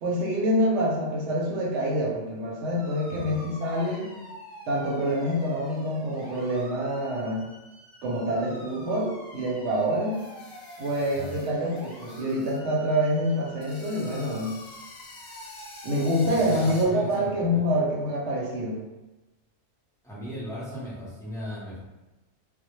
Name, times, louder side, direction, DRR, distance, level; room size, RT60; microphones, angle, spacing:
voice 1, 0.0-4.1 4.7-7.4 8.0-10.2 10.8-14.5 15.8-18.8, equal, 70° right, -2 dB, 0.8 m, -26 dB
sound 1, 2.8-16.9, equal, 20° left, 0.7 m, -47 dB
voice 2, 3.1-3.4 11.2-11.3 16.3-17.7 20.0-21.8, equal, 5° left, -9 dB, 0.4 m, -37 dB
sound 2, 10.1-12.6 12.9-13.0 13.6-16.8, left 2 dB, 60° left, 0.7 m, -48 dB
2.1 x 2.1 x 2.9 m, 1.1 s
omnidirectional pair, 1.3 m